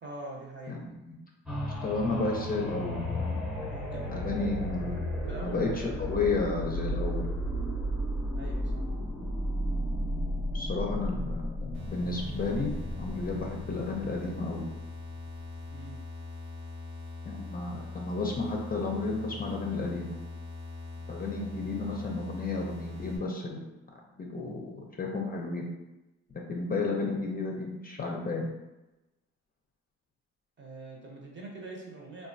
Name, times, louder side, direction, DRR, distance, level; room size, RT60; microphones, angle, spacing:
voice 1, 0.0-0.8 3.7-4.9 5.3-6.4 8.3-8.8 15.7-16.0 30.6-32.3, right 2 dB, 40° right, -2 dB, 0.9 m, -44 dB
voice 2, 0.7-1.1 1.8-3.4 4.1-4.9 5.4-5.7 6.0-7.3 10.5-12.7 13.0-14.6 17.2-20.1 21.0-25.6 26.3-28.5, left 3 dB, 30° left, 0 dB, 0.5 m, -32 dB
sound 1, 1.5-15.1 15.6-15.7, equal, 5° right, 0.8 m, -34 dB
sound 2, 11.7-23.2, left 3 dB, 70° right, 1.0 m, -42 dB
3.0 x 2.2 x 2.6 m, 1.0 s
cardioid pair, 90°, 30 cm